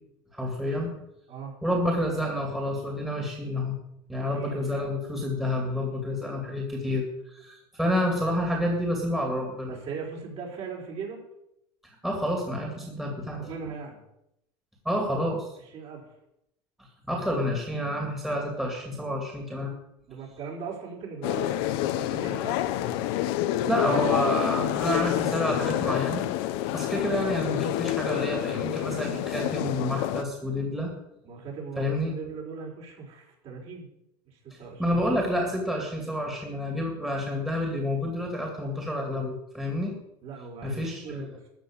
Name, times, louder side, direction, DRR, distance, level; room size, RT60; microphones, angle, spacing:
voice 1, 0.3-0.9 1.6-3.8 4.1-9.7 12.0-13.4 14.8-15.5 17.1-19.7 23.7-26.2 26.7-30.9 31.8-32.1 34.8-40.0 40.6-41.2, left 1 dB, 5° right, -1 dB, 2.5 m, -29 dB
voice 2, 4.2-4.8 9.7-11.2 13.4-14.0 15.6-16.1 20.1-22.6 23.5-24.4 31.2-33.9 34.3-35.0 40.2-41.5, right 5 dB, 45° right, -2 dB, 4.9 m, -39 dB
sound 1, 21.2-30.2, left 14 dB, 70° left, 1.0 m, -28 dB
14.0 x 6.3 x 8.7 m, 0.82 s
supercardioid pair, 140°, 14 cm